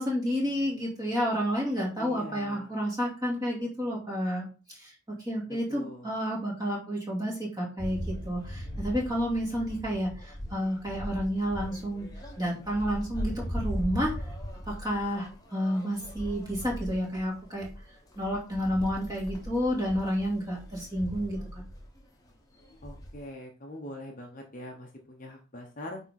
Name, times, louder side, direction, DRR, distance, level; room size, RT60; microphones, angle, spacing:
voice 1, 0.0-12.1 12.4-14.1 14.7-17.7 18.2-21.4, equal, 15° right, -3 dB, 2.4 m, -30 dB
voice 2, 2.0-2.7 5.7-6.1 22.8-26.0, left 1 dB, 35° left, 1 dB, 1.0 m, -43 dB
sound 1, 7.8-22.0 22.3-22.4 22.6-23.2, equal, 15° left, 1.3 m, -39 dB
8.8 x 3.7 x 4.2 m, 0.35 s
head